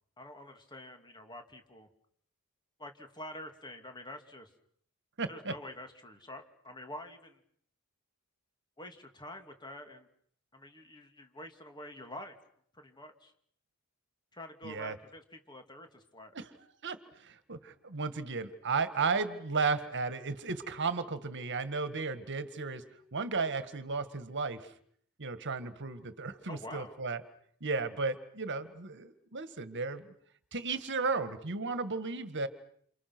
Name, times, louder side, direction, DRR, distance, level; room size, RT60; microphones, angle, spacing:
voice 1, 0.2-1.9 2.8-4.5 5.3-7.4 8.8-10.1 10.5-12.3 12.7-13.3 14.3-16.3 26.5-27.0, left 1 dB, 20° left, 5 dB, 2.6 m, -47 dB
voice 2, 5.2-5.5 14.6-15.0 16.3-16.5 16.8-22.8 23.1-24.7 25.2-27.2 27.6-30.1 30.5-32.5, right 4 dB, 55° right, 11 dB, 1.8 m, -34 dB
29.0 x 28.5 x 6.1 m, 0.65 s
head